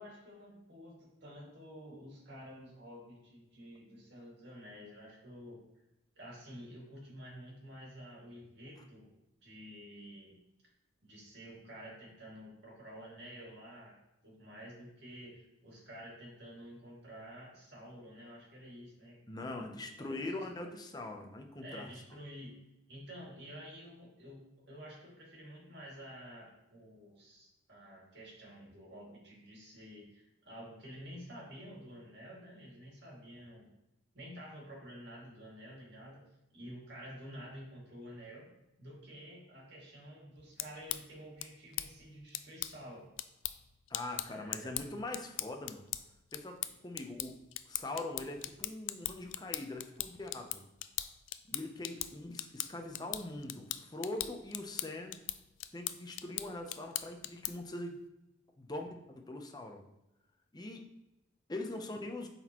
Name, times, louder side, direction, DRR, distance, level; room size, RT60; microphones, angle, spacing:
voice 1, 0.0-5.6 6.1-9.1 9.4-10.4 11.0-13.9 14.2-19.7 20.0-20.3 20.6-20.7 21.6-22.5 22.9-33.7 34.1-36.2 36.5-38.5 38.8-43.1 44.3-44.7, equal, 55° right, -3 dB, 2.1 m, -50 dB
voice 2, 19.3-21.9 43.9-45.8 46.3-47.4 47.7-50.6 51.5-55.2 55.7-58.0 58.6-59.8 60.5-60.8 61.5-62.3, left 2 dB, 20° left, 3 dB, 0.6 m, -42 dB
sound 1, 40.4-57.7, left 14 dB, 70° left, 0.3 m, -41 dB
7.6 x 4.2 x 3.0 m, 0.93 s
head